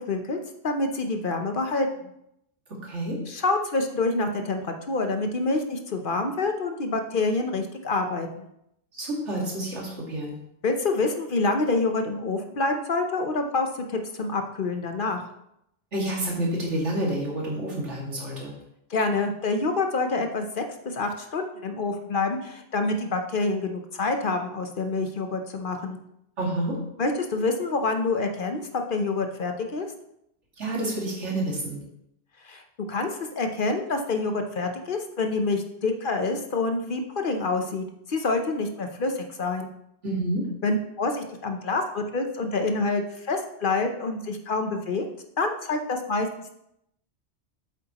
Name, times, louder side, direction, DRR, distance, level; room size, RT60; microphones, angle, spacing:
voice 1, 0.1-0.4 0.6-1.9 3.3-8.5 10.6-15.2 18.9-26.0 27.0-28.6 28.9-29.9 32.4-32.6 32.9-33.1 33.4-39.7 40.6-45.0 45.4-46.3, left 3 dB, 50° left, 5 dB, 0.9 m, -27 dB
voice 2, 2.7-3.2 8.9-10.4 15.9-18.6 26.4-26.8 30.6-31.8 40.0-40.5, right 1 dB, 80° right, -3 dB, 2.5 m, -29 dB
8.3 x 7.8 x 2.9 m, 0.78 s
omnidirectional pair, 1.2 m